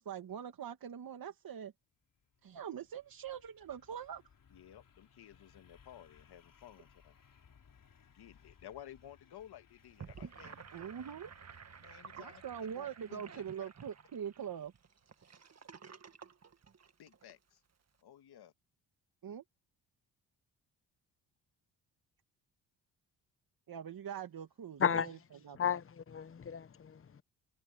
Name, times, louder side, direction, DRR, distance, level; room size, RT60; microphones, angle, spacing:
voice 1, 0.0-1.7 2.4-4.2 10.7-11.3 12.2-14.7 19.2-19.4 23.7-25.2 25.4-25.7, right 8 dB, 60° right, 2.5 m, -43 dB
sound 1, 2.0-13.7, left 6 dB, 50° left, 4.6 m, -66 dB
voice 2, 4.5-7.2 8.1-11.0 11.8-12.4 12.7-13.7 17.0-17.6 18.0-18.5, left 11 dB, 70° left, 2.0 m, -55 dB
Gurgling / Sink (filling or washing), 9.8-17.3, right 6 dB, 40° right, 1.8 m, -53 dB
voice 3, 24.8-25.1 25.6-27.2, left 8 dB, 30° left, 0.9 m, -34 dB
supercardioid pair, 65°, 41 cm